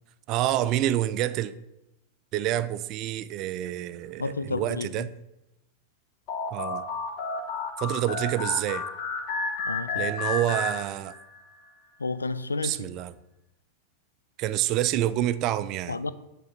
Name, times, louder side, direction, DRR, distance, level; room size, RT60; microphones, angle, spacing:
voice 1, 0.3-1.5 2.3-5.1 6.5-6.8 7.8-8.9 9.9-11.1 12.6-13.1 14.4-16.0, right 13 dB, 40° right, 0.4 m, -27 dB
voice 2, 4.2-5.1 9.6-10.1 12.0-12.9 15.9-16.1, left 3 dB, 80° left, 0.3 m, -31 dB
sound 1, 6.3-11.4, left 4 dB, 40° left, 1.2 m, -32 dB
8.8 x 3.4 x 5.7 m
figure-of-eight pair, 90°, 0 cm